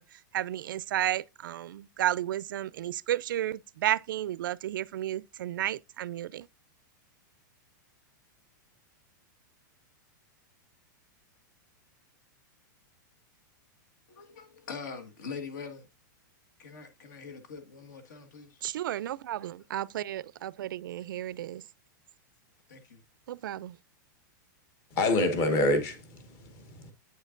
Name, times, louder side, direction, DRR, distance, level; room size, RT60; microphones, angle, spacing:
voice 1, 0.0-6.5 18.6-21.7 23.3-23.8, right 12 dB, 80° right, 0.4 m, -32 dB
voice 2, 14.1-15.9 16.6-18.6 21.0-21.1 22.7-23.0, left 5 dB, 65° left, 1.6 m, -43 dB
voice 3, 24.9-26.9, left 2 dB, 25° left, 1.1 m, -27 dB
8.2 x 6.4 x 2.5 m
supercardioid pair, 180°, 11 cm